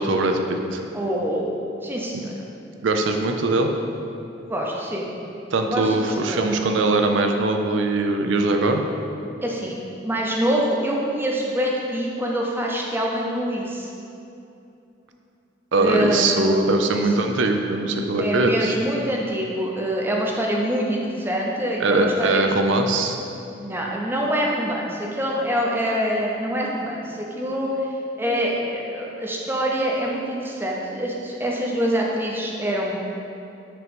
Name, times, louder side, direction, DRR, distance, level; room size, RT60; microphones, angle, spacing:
voice 1, 0.0-0.8 2.1-2.2 2.8-3.7 5.5-8.8 15.7-18.7 21.8-23.2, right 2 dB, 75° right, 4 dB, 0.5 m, -21 dB
voice 2, 0.9-2.3 4.4-5.1 5.7-6.6 9.4-9.8 10.0-13.9 15.8-16.6 16.9-17.3 18.2-22.4 23.6-33.0, equal, 10° right, -2 dB, 0.6 m, -25 dB
6.0 x 3.0 x 5.2 m, 2.7 s
head